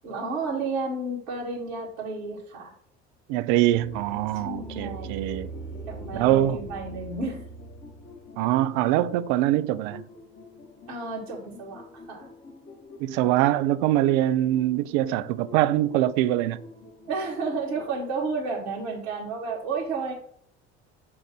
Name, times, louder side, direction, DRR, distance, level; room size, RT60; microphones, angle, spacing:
voice 1, 0.0-2.8 4.4-5.2 5.9-7.4 10.9-12.3 17.1-20.1, right 3 dB, 90° right, 1.8 m, -32 dB
voice 2, 3.3-5.5 6.1-6.6 8.4-10.0 13.0-16.6, right 14 dB, 70° right, 0.5 m, -23 dB
sound 1, 3.7-17.9, equal, 35° left, 1.8 m, -44 dB
7.5 x 2.6 x 5.8 m
hypercardioid pair, 65°, 31 cm